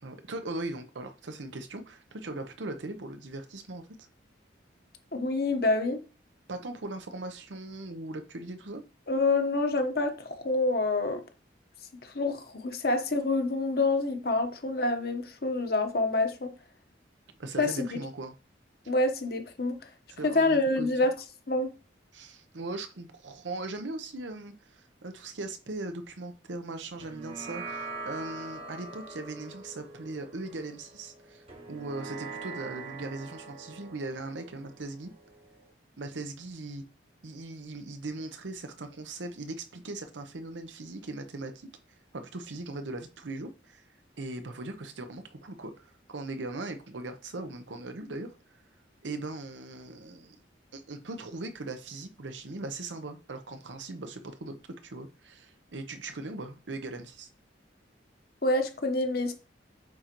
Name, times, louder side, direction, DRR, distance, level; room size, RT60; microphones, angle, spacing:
voice 1, 0.0-3.9 6.5-8.8 17.4-18.3 20.1-20.9 22.1-35.1 36.0-36.8 37.2-41.7 42.1-43.8 44.2-48.3 49.0-50.4 50.7-54.6 54.8-57.3, right 2 dB, 90° right, 0.8 m, -39 dB
voice 2, 5.1-6.0 9.1-11.2 12.0-16.5 17.6-17.9 18.9-19.8 20.2-21.1 21.5-21.7 58.4-59.3, left 2 dB, 55° left, 1.1 m, -27 dB
sound 1, 27.0-35.7, right 3 dB, 35° right, 0.9 m, -43 dB
8.6 x 3.9 x 3.0 m
head